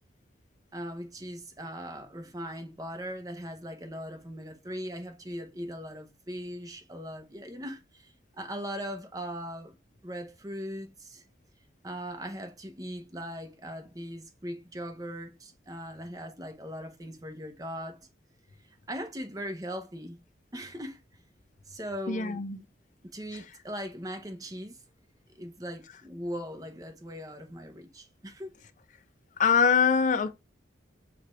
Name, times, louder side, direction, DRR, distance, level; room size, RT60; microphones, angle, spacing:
voice 1, 0.7-9.8 10.0-11.2 11.8-18.0 18.9-20.2 20.5-21.0 21.7-22.4 23.1-24.8 25.3-28.5, equal, 20° right, 0.8 m, -39 dB
voice 2, 22.1-22.6 23.3-23.4 29.4-30.3, left 6 dB, 40° left, 0.4 m, -23 dB
4.8 x 2.4 x 4.4 m
head